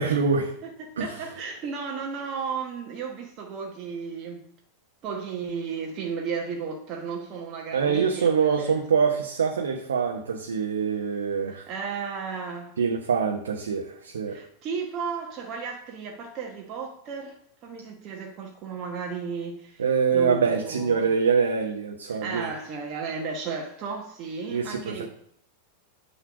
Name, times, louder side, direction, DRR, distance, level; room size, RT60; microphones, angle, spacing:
voice 1, 0.0-0.5 1.0-1.1 7.7-11.7 12.8-14.4 19.8-22.5 24.5-25.1, right 6 dB, 65° right, 0.9 m, -24 dB
voice 2, 0.6-4.4 5.0-8.8 11.5-12.8 14.3-17.4 17.6-19.8 20.1-21.1 22.1-25.1, right 5 dB, 35° right, 1.1 m, -34 dB
9.1 x 3.2 x 5.9 m
figure-of-eight pair, 90°, 0 cm